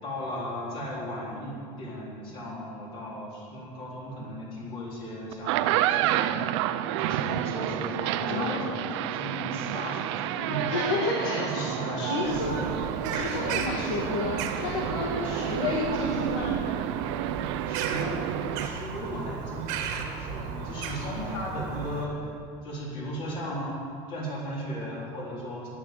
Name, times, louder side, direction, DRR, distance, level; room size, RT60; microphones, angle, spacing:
voice 1, 0.0-6.5 7.0-10.9 11.2-12.8 13.8-14.1 15.2-15.5 17.6-18.2 18.5-22.3 22.6-23.8 24.1-25.7, equal, 40° left, -4 dB, 3.9 m, -36 dB
sound 1, 5.3-18.7, right 13 dB, 90° right, 0.6 m, -30 dB
voice 2, 8.3-8.9 10.7-11.7 12.0-12.6 13.1-16.6, left 4 dB, 85° left, -2 dB, 1.8 m, -31 dB
Bird vocalization bird call bird song, 12.2-22.0, right 6 dB, 60° right, 1.6 m, -35 dB
11.0 x 10.5 x 7.7 m, 2.4 s
cardioid pair, 165°, 14 cm